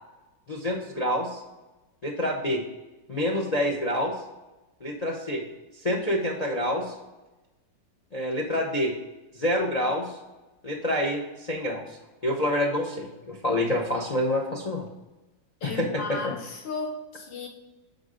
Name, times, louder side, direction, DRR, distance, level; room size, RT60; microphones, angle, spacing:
voice 1, 0.5-1.4 2.0-2.6 3.1-4.2 4.8-5.4 5.8-6.9 8.1-8.9 9.4-10.2 10.6-11.8 12.2-14.8 15.6-16.4, left 1 dB, 60° left, 0 dB, 0.4 m, -27 dB
voice 2, 15.6-17.5, left 3 dB, 85° left, 2 dB, 1.6 m, -34 dB
6.0 x 5.0 x 4.9 m, 1.1 s
omnidirectional pair, 2.0 m